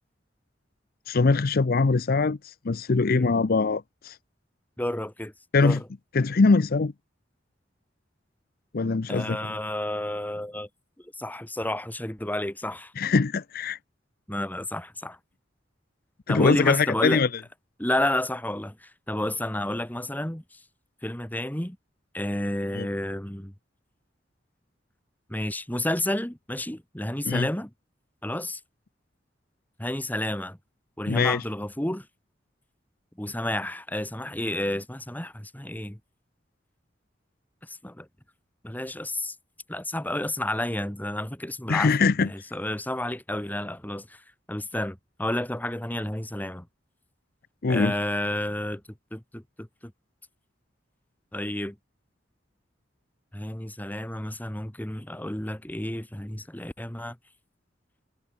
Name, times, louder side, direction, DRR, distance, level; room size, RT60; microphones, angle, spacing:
voice 1, 1.1-4.2 5.5-5.8 6.1-6.9 8.7-9.4 13.0-13.8 16.3-17.3 22.7-22.9 27.2-27.5 31.1-31.4 41.7-42.3 47.6-48.0, left 4 dB, 55° left, 0.6 m, -22 dB
voice 2, 3.1-3.4 4.8-5.3 5.6-5.8 9.1-10.7 11.2-12.9 14.3-15.2 16.3-17.2 17.8-20.4 21.0-21.8 22.1-23.5 25.3-27.7 28.2-28.6 29.8-30.6 31.0-32.1 33.2-36.0 37.8-38.1 38.6-39.3 39.7-41.9 42.2-44.2 44.5-46.7 47.7-48.8 49.1-49.9 51.3-51.8 53.3-57.2, left 1 dB, 10° left, 1.6 m, -31 dB
head